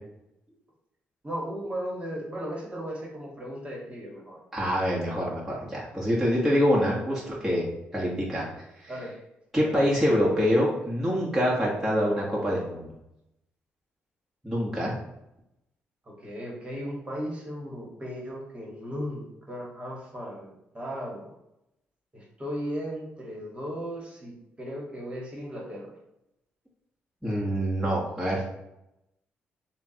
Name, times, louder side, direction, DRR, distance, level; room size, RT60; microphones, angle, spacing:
voice 1, 1.2-4.4 7.1-7.2 8.9-9.1 9.6-10.0 16.0-21.3 22.1-25.9, equal, 25° right, -2 dB, 1.7 m, -36 dB
voice 2, 4.5-7.7 7.9-8.5 8.8-8.9 9.5-12.9 14.4-14.9 27.2-28.5, equal, 5° right, -7 dB, 1.5 m, -25 dB
6.8 x 2.4 x 2.9 m, 0.87 s
supercardioid pair, 65°, 4 cm